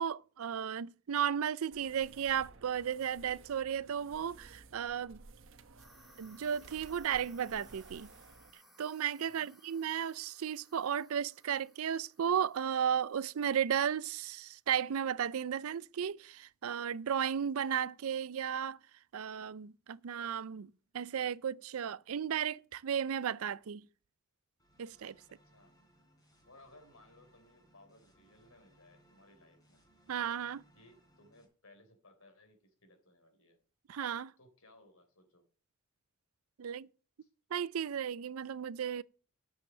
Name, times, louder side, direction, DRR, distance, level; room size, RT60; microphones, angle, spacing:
voice 1, 0.0-5.2 6.2-8.1 8.8-18.8 19.1-23.8 24.8-25.1 30.1-30.6 33.9-34.3 36.6-36.9 37.5-39.0, right 8 dB, 85° right, 0.4 m, -34 dB
sound 1, 1.7-8.5, right 3 dB, 65° right, 0.9 m, -56 dB
sound 2, 5.8-14.0, equal, ahead, 2.8 m, -63 dB
sound 3, 24.6-31.4, right 1 dB, 20° left, 3.6 m, -67 dB
voice 2, 25.3-25.7 26.4-29.8 30.7-33.6 34.4-35.4 37.2-37.3, left 2 dB, 75° left, 3.7 m, -62 dB
10.5 x 7.2 x 6.3 m
head